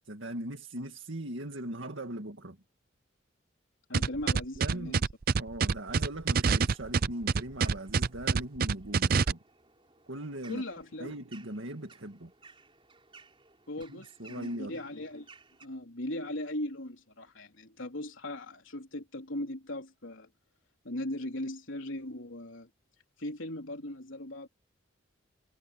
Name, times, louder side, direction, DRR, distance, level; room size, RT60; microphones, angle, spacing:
voice 1, 0.0-2.6 4.6-5.0 5.4-9.4 10.1-10.6 11.0-12.3 13.9-14.8, right 1 dB, 70° right, 2.0 m, -40 dB
voice 2, 3.9-5.0 10.5-11.1 13.7-15.3 15.6-20.3 20.8-22.7 23.2-24.5, left 1 dB, 70° left, 3.7 m, -38 dB
sound 1, 3.9-9.3, right 5 dB, 45° right, 0.5 m, -26 dB
sound 2, 6.6-15.7, right 4 dB, 25° right, 4.6 m, -59 dB
head